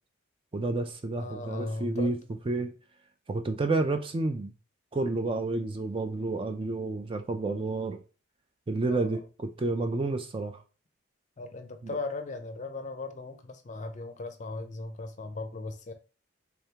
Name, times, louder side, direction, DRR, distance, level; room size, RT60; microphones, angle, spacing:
voice 1, 0.5-2.2 2.5-2.7 3.3-4.5 4.9-8.0 8.7-10.6 11.8-12.0, right 2 dB, 25° right, 0.3 m, -30 dB
voice 2, 1.2-2.2 8.9-9.2 11.4-15.9, left 3 dB, 35° left, 0.5 m, -37 dB
3.6 x 3.4 x 2.8 m
head